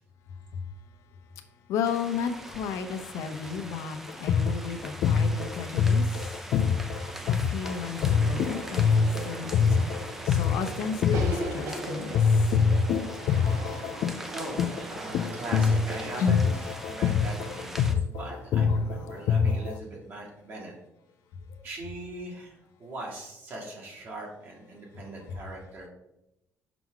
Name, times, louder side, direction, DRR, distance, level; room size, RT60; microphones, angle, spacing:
voice 1, 1.7-6.3 7.0-9.9 10.2-12.2 16.2-16.4 18.7-18.8 21.5-21.6, left 6 dB, 90° left, 7 dB, 0.8 m, -33 dB
sound 1, 1.8-17.9, right 1 dB, 5° right, 0.5 m, -42 dB
sound 2, 4.1-11.8 12.1-19.8, left 6 dB, 60° left, 0.3 m, -25 dB
sound 3, 7.9-16.1, right 3 dB, 70° right, 1.1 m, -40 dB
voice 2, 13.7-20.7 21.6-25.9, right 2 dB, 45° right, 0 dB, 1.9 m, -40 dB
5.9 x 5.9 x 3.8 m, 0.86 s
cardioid pair, 165°, 5 cm